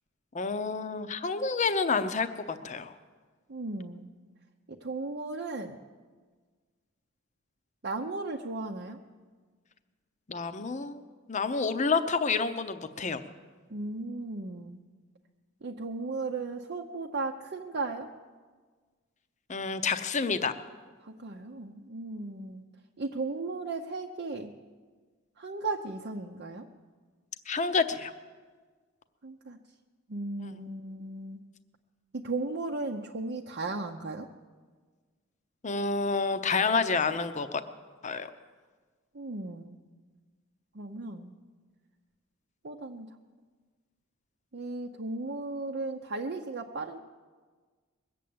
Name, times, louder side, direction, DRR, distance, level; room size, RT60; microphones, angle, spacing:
voice 1, 0.3-2.9 10.3-11.0 11.3-13.2 19.5-20.5 27.5-28.1 30.4-30.6 35.6-37.5 38.0-38.3, left 4 dB, 35° left, 10 dB, 0.7 m, -29 dB
voice 2, 3.5-4.1 4.8-5.8 7.8-9.0 13.7-14.8 15.6-18.1 21.0-22.7 23.0-24.5 25.4-26.7 29.2-29.6 30.1-31.4 32.1-34.3 39.1-39.8 40.7-41.3 42.6-43.1 44.5-47.0, right 3 dB, 55° right, 1 dB, 0.7 m, -36 dB
21.0 x 7.7 x 8.6 m, 1.5 s
head